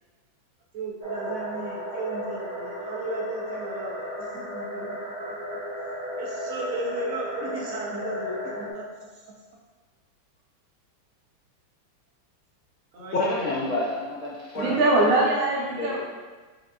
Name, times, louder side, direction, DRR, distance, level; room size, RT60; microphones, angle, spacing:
voice 1, 0.7-5.4 6.2-9.4 12.9-13.4, right 2 dB, 65° right, -3 dB, 0.8 m, -35 dB
sound 1, 1.0-8.7, equal, 50° right, 0.4 m, -34 dB
voice 2, 13.1-15.0 15.7-16.0, left 2 dB, 85° left, -5 dB, 0.6 m, -29 dB
voice 3, 14.6-16.0, right 2 dB, 85° right, -5 dB, 1.9 m, -22 dB
4.9 x 3.7 x 2.3 m, 1.3 s
omnidirectional pair, 2.1 m